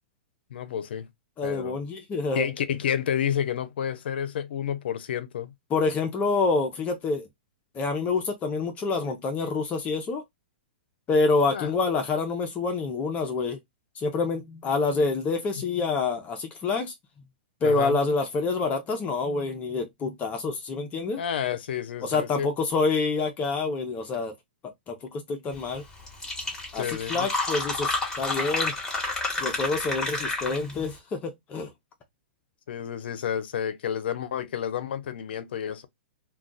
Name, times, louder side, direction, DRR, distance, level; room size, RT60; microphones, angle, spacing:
voice 1, 0.5-1.1 1.4-1.8 2.3-5.5 11.5-11.7 17.6-18.0 21.2-22.5 26.7-27.3 32.7-35.9, left 9 dB, 75° left, 0.5 m, -30 dB
voice 2, 1.4-2.5 5.7-7.3 7.7-10.2 11.1-13.6 14.0-16.9 17.6-21.2 22.0-24.3 24.9-25.8 26.7-28.7 29.4-31.7, left 3 dB, 25° left, 0.6 m, -27 dB
Fill (with liquid), 25.8-25.9 26.1-30.8, left 2 dB, 10° left, 1.2 m, -30 dB
2.3 x 2.3 x 3.8 m
hypercardioid pair, 130°, 6 cm